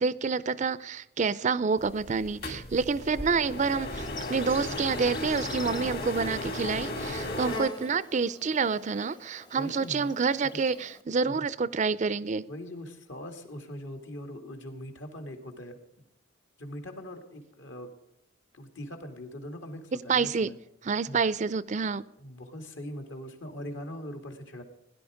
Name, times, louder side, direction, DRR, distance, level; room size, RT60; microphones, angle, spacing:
voice 1, 0.0-12.5 20.1-20.5 20.8-22.0, right 5 dB, 35° right, 0.4 m, -28 dB
sound 1, 1.8-7.6, left 1 dB, 50° left, 2.5 m, -35 dB
Insect, 3.4-11.0, left 3 dB, 20° left, 0.8 m, -44 dB
voice 2, 9.5-10.1 10.5-10.6 11.2-11.5 12.5-15.8 16.6-17.9 18.5-20.6 21.0-21.2 22.2-24.6, left 1 dB, 70° left, 2.5 m, -41 dB
17.5 x 11.0 x 5.0 m
head